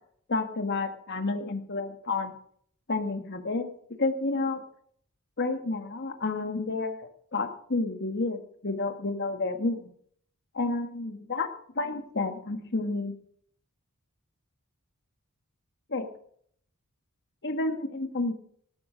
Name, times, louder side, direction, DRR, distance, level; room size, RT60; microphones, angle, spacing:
voice 1, 0.3-2.3 2.9-3.6 4.0-4.6 5.4-7.0 7.3-9.9 10.5-11.5 11.7-13.1 15.9-16.1 17.4-18.3, left 3 dB, 55° left, 6 dB, 1.7 m, -30 dB
18.5 x 12.0 x 5.1 m, 0.64 s
head